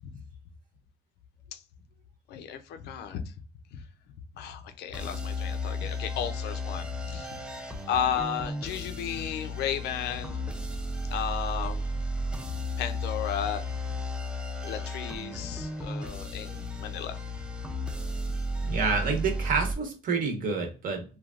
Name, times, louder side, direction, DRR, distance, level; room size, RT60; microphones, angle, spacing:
voice 1, 2.3-3.2 3.7-3.8 4.4-7.4 7.9-10.4 11.1-11.8 12.8-13.6 14.6-17.2, left 8 dB, 80° left, 0.5 m, -33 dB
sound 1, 4.9-19.7, left 1 dB, 5° right, 0.4 m, -34 dB
voice 2, 18.6-21.0, right 4 dB, 55° right, 0.9 m, -28 dB
3.2 x 2.3 x 2.4 m
cardioid pair, 110°, 17 cm